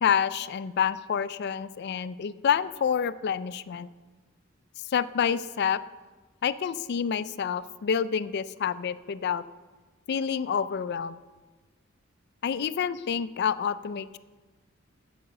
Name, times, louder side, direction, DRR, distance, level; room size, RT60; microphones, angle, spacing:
voice 1, 0.0-3.9 4.9-5.8 6.4-9.4 10.1-11.2 12.4-14.2, left 7 dB, 55° left, 15 dB, 0.4 m, -28 dB
8.8 x 7.8 x 6.4 m, 1.3 s
head